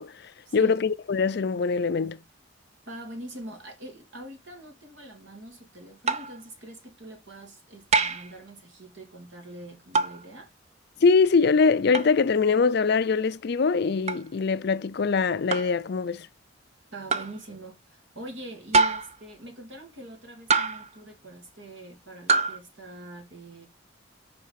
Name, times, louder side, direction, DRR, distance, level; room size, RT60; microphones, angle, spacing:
voice 1, 0.0-2.2 11.0-16.3, left 5 dB, 55° left, 0.4 m, -23 dB
voice 2, 2.9-10.5 16.9-23.7, right 1 dB, 70° right, 2.5 m, -43 dB
sound 1, 6.1-6.4 7.9-8.3 9.9-10.2 11.9-12.1 14.1-14.2 15.5-15.8 17.1-17.4 18.7-19.2 20.5-20.9 22.3-22.6, right 4 dB, 35° right, 0.6 m, -24 dB
6.2 x 4.6 x 5.8 m
head